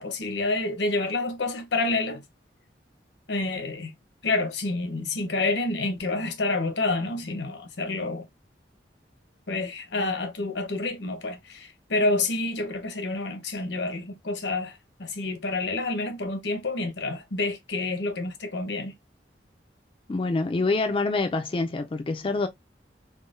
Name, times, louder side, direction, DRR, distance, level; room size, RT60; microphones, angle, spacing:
voice 1, 0.0-2.2 3.3-3.9 4.2-8.3 9.5-18.9, left 2 dB, 85° left, 0.9 m, -28 dB
voice 2, 20.1-22.5, left 3 dB, 30° left, 0.4 m, -26 dB
3.7 x 2.2 x 2.5 m
head